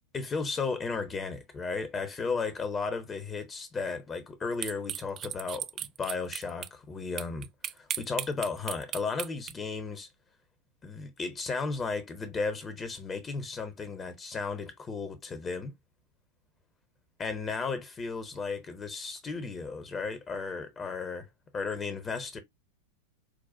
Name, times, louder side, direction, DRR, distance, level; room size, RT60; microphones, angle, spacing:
voice 1, 0.1-7.5 7.7-10.1 10.8-15.7 17.2-21.3 21.5-22.4, left 4 dB, 20° left, 0.9 m, -34 dB
sound 1, 4.6-6.7 7.2-9.5, right 10 dB, 30° right, 0.3 m, -35 dB
4.7 x 2.4 x 2.6 m
figure-of-eight pair, 90°, 0 cm